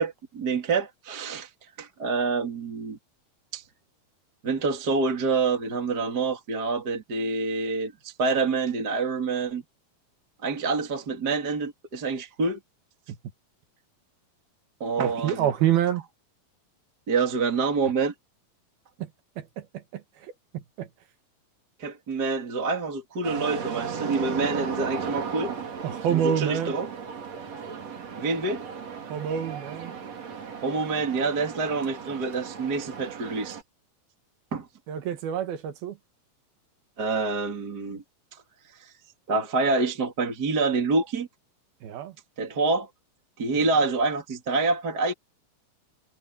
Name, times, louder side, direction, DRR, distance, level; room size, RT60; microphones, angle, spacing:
voice 1, 0.0-1.5 1.8-3.0 3.5-3.6 4.4-9.6 10.4-12.6 14.8-15.5 17.1-18.1 21.8-25.5 26.1-26.9 28.2-28.6 30.6-33.6 34.5-34.6 37.0-38.0 38.8-38.9 39.3-41.3 42.4-42.9 43.4-45.1, right 4 dB, 30° right, 2.8 m, -27 dB
voice 2, 15.0-16.0 19.0-19.1 19.4-19.7 19.9-20.9 25.8-26.7 29.1-29.9 34.9-36.0 41.8-42.2, right 9 dB, 80° right, 3.5 m, -27 dB
sound 1, 23.2-33.6, right 6 dB, 45° right, 3.8 m, -36 dB
omnidirectional pair, 4.3 m